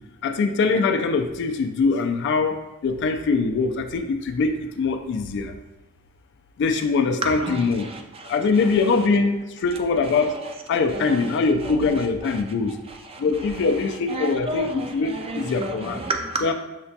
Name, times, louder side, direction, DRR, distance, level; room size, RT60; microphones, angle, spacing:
voice 1, 0.2-5.5 6.6-7.9 8.2-10.4 10.7-12.8 13.2-16.0 16.4-16.5, left 4 dB, 55° left, 7 dB, 0.3 m, -23 dB
voice 2, 7.2-8.7 10.0-10.5 10.9-12.4 12.9-13.7 14.1-16.4, right 2 dB, 30° right, 3 dB, 0.4 m, -32 dB
5.8 x 2.2 x 2.7 m, 1.0 s
head